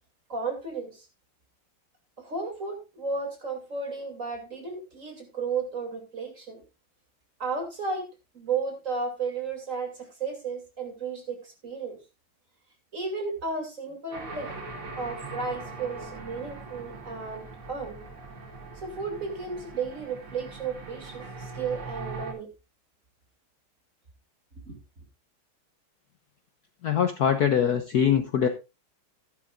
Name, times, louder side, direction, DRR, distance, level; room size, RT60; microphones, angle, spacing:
voice 1, 0.3-1.1 2.2-6.6 7.4-8.1 8.3-12.0 12.9-14.6 15.0-18.0 18.8-22.5 24.7-24.8, right 4 dB, 35° right, 3 dB, 3.0 m, -33 dB
sound 1, 14.1-22.3, right 3 dB, 85° right, 3.5 m, -41 dB
voice 2, 26.8-28.5, left 8 dB, 60° left, 8 dB, 1.1 m, -23 dB
14.0 x 11.0 x 2.5 m, 0.27 s
omnidirectional pair, 2.3 m